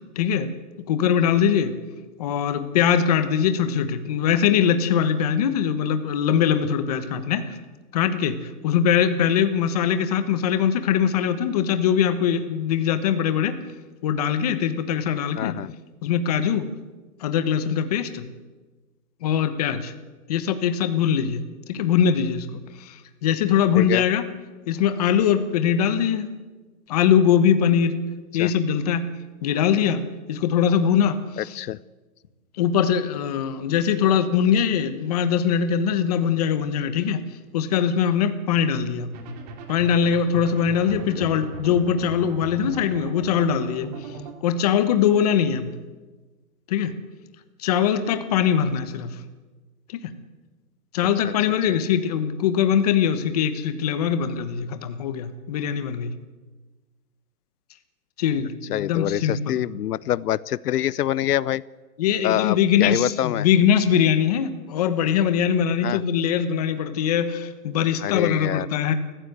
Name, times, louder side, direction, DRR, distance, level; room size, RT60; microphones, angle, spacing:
voice 1, 0.2-0.5 0.9-1.7 2.2-7.6 7.9-8.3 8.6-13.5 14.0-15.6 16.0-16.7 17.2-18.3 19.2-19.9 20.3-21.4 21.7-22.5 22.8-24.2 24.7-26.3 26.9-27.9 28.3-29.1 29.4-31.6 32.6-37.2 37.5-39.1 39.7-43.9 44.4-45.7 46.7-46.9 47.6-49.1 49.9-50.0 50.9-56.1 58.2-59.6 62.0-68.9, left 8 dB, 25° left, 10 dB, 1.2 m, -22 dB
voice 2, 15.4-15.7 23.7-24.0 28.4-28.5 31.4-31.8 41.2-41.3 51.2-51.3 51.7-51.8 58.7-61.6 62.2-63.5 65.8-66.0 68.0-68.7, left 12 dB, 85° left, 20 dB, 0.8 m, -25 dB
sound 1, 39.1-44.3, right 2 dB, 25° right, 2.3 m, -38 dB
28.0 x 15.0 x 8.1 m, 1.3 s
hypercardioid pair, 180°, 45 cm